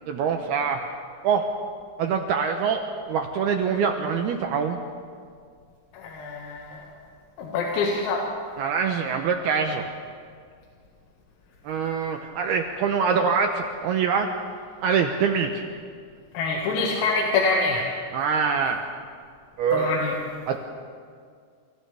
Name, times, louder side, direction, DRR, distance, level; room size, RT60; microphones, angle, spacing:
voice 1, 0.1-0.8 1.2-1.5 2.0-2.8 3.1-4.8 8.6-9.9 11.6-14.3 14.8-15.6 18.1-18.8 19.6-20.0 20.5-20.6, right 6 dB, 85° right, 4 dB, 2.2 m, -24 dB
voice 2, 5.9-6.9 7.4-8.2 16.3-17.9 19.7-20.2, left 3 dB, 85° left, -2 dB, 4.6 m, -25 dB
29.5 x 29.0 x 3.5 m, 2.1 s
omnidirectional pair, 5.9 m